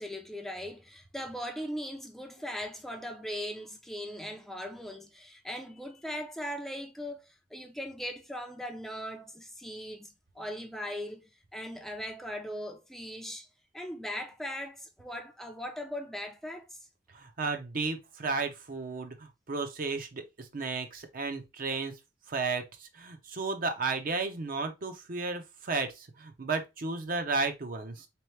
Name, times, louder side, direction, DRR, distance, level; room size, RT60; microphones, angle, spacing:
voice 1, 0.0-13.5 13.7-16.8, equal, ahead, 0.4 m, -39 dB
voice 2, 17.1-22.0 22.3-28.1, right 4 dB, 50° right, 0.6 m, -33 dB
3.8 x 3.0 x 3.2 m
head